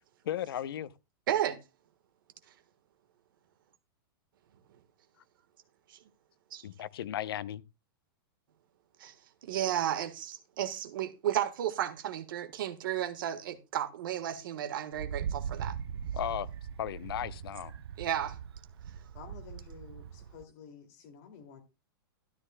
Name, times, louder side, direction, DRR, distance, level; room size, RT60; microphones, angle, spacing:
voice 1, 0.2-0.9 6.6-7.6 16.1-16.5 16.8-17.7, left 11 dB, 70° left, 0.7 m, -35 dB
voice 2, 1.3-1.6 5.9-6.0 6.5-6.6 9.0-9.1 9.4-15.8 18.0-18.4, right 11 dB, 60° right, 1.4 m, -33 dB
Wind, 14.9-20.4, right 8 dB, 90° right, 0.8 m, -40 dB
voice 3, 19.1-21.6, left 7 dB, 40° left, 2.4 m, -51 dB
13.0 x 11.5 x 2.2 m
supercardioid pair, 175°, 13 cm